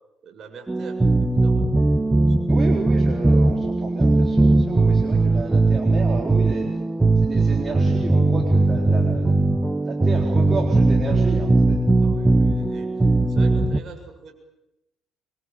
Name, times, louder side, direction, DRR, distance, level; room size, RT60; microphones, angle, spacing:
voice 1, 0.2-1.7 2.2-2.7 4.7-5.6 11.9-12.9 13.2-14.3, right 5 dB, 50° right, 4 dB, 7.1 m, -44 dB
sound 1, 0.7-13.8, right 2 dB, 15° right, 1.5 m, -19 dB
voice 2, 2.5-6.7 7.2-9.4 9.9-11.8, right 4 dB, 35° right, 2 dB, 4.0 m, -32 dB
26.0 x 23.5 x 9.2 m, 0.90 s
hypercardioid pair, 50°, 0 cm